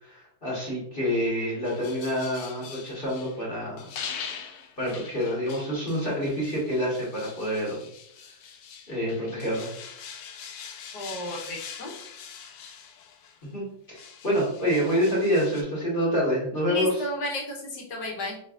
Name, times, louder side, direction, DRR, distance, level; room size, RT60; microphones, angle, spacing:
voice 1, 0.0-3.8 4.8-7.8 8.9-9.7 13.4-17.0, equal, 30° left, -6 dB, 1.2 m, -27 dB
sound 1, 1.6-3.4 3.8-13.5 13.9-15.6, left 7 dB, 85° left, 0.8 m, -43 dB
voice 2, 10.9-11.9 16.7-18.4, left 2 dB, 60° left, 0 dB, 1.4 m, -33 dB
4.4 x 3.3 x 2.4 m, 0.70 s
omnidirectional pair, 2.2 m